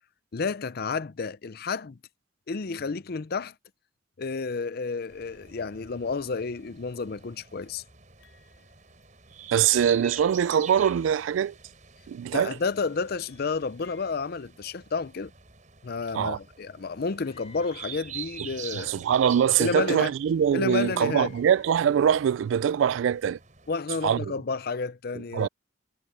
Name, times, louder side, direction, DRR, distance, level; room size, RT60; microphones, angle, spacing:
voice 1, 0.3-2.0 2.5-3.5 4.2-7.8 12.3-15.3 15.8-19.0 19.6-20.1 20.5-21.3 23.7-25.5, left 4 dB, 55° left, 0.6 m, -31 dB
sound 1, 5.1-23.8, right 8 dB, 40° right, 4.8 m, -45 dB
sound 2, 8.2-9.4 9.8-12.0 12.7-14.1, left 5 dB, 85° left, 7.6 m, -62 dB
voice 2, 9.5-11.5 12.1-12.6 16.1-16.4 18.7-23.4 24.0-24.3 25.3-25.5, right 8 dB, 80° right, 0.3 m, -23 dB
Screaming, 17.2-18.1 20.5-21.8, left 6 dB, 35° left, 2.4 m, -55 dB
head